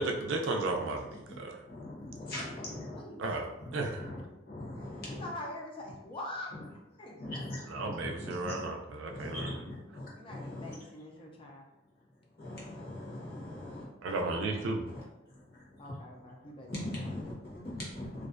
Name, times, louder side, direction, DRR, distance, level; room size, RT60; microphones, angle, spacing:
voice 1, 0.0-1.6 3.2-4.1 7.6-9.6 14.0-14.8, right 2 dB, 75° right, 2 dB, 0.4 m, -34 dB
voice 2, 1.7-3.0 3.6-3.7 4.0-5.3 7.2-8.7 9.1-10.8 12.4-13.9 14.9-15.0 15.3-15.9 16.4-18.3, left 1 dB, 50° left, -6 dB, 0.9 m, -41 dB
voice 3, 2.4-3.2 5.1-6.5 7.0-7.2 10.2-11.6 14.0-14.6 15.8-17.1, left 1 dB, 25° left, -1 dB, 0.4 m, -44 dB
2.4 x 2.1 x 2.4 m, 0.93 s
head